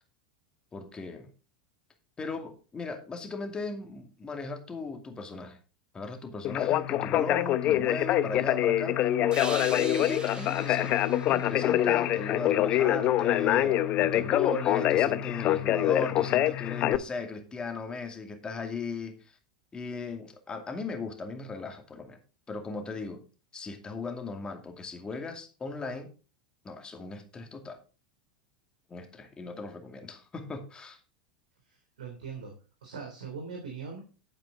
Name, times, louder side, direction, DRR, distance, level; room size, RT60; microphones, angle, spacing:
voice 1, 0.7-1.3 2.2-5.6 5.9-9.0 9.8-11.0 11.2-19.1 19.7-22.2 22.5-23.2 23.5-26.1 26.6-27.8 28.9-31.0, left 4 dB, 20° left, 5 dB, 2.4 m, -37 dB
Conversation, 6.4-17.0, left 12 dB, 40° left, 0.7 m, -25 dB
sound 1, 9.3-12.8, right 5 dB, 20° right, 1.2 m, -43 dB
voice 2, 31.7-32.5 32.8-34.0, right 5 dB, 70° right, 2 dB, 3.0 m, -41 dB
11.5 x 8.5 x 3.6 m, 0.33 s
figure-of-eight pair, 85°, 4 cm